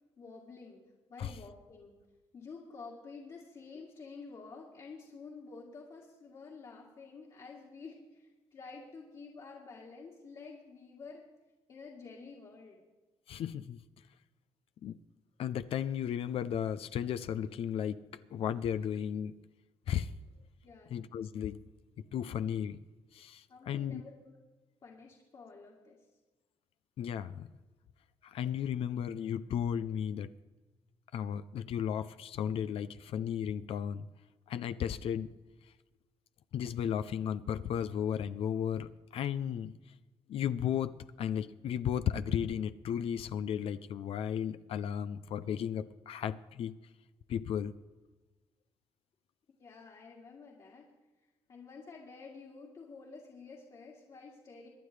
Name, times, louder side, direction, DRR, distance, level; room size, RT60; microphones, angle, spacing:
voice 1, 0.2-0.8 1.1-2.0 2.3-11.3 11.7-12.8 20.6-21.0 23.5-24.4 24.8-26.1 49.6-50.9 51.5-54.7, left 4 dB, 50° left, -3 dB, 2.2 m, -50 dB
voice 2, 13.3-13.8 14.8-15.0 15.4-18.0 18.3-19.3 19.9-20.1 20.9-21.6 22.1-22.8 23.1-24.0 27.0-27.5 28.2-30.3 31.1-34.1 34.5-35.3 36.5-39.8 40.3-46.8 47.3-47.7, left 9 dB, 70° left, 12 dB, 0.5 m, -34 dB
24.0 x 10.0 x 3.3 m, 1.2 s
cardioid pair, 115°, 10 cm